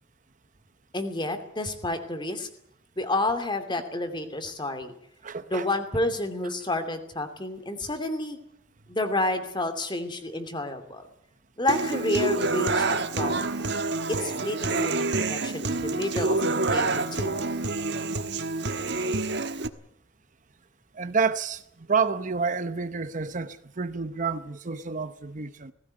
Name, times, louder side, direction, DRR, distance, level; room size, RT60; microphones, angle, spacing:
voice 1, 0.9-2.5 3.0-4.9 5.5-8.4 8.9-11.1 11.6-13.7 14.1-17.5, left 1 dB, 25° left, 2.7 m, -30 dB
voice 2, 5.2-5.7 20.9-25.7, right 5 dB, 40° right, 0.8 m, -29 dB
Human voice / Acoustic guitar, 11.7-19.7, right 3 dB, 60° right, 1.3 m, -27 dB
18.5 x 16.0 x 9.6 m
head